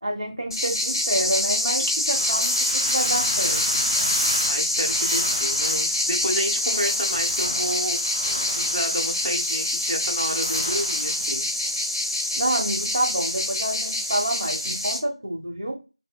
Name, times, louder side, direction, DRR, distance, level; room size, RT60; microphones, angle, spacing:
voice 1, 0.0-3.8 12.3-15.8, right 1 dB, 55° right, -1 dB, 0.9 m, -28 dB
sound 1, 0.5-15.0, left 1 dB, 40° left, 0.7 m, -25 dB
sound 2, 2.1-11.4, equal, 5° right, 1.3 m, -32 dB
voice 2, 4.4-11.5, equal, 85° right, 1 dB, 0.8 m, -30 dB
3.0 x 2.1 x 2.2 m, 0.28 s
figure-of-eight pair, 175°, 3 cm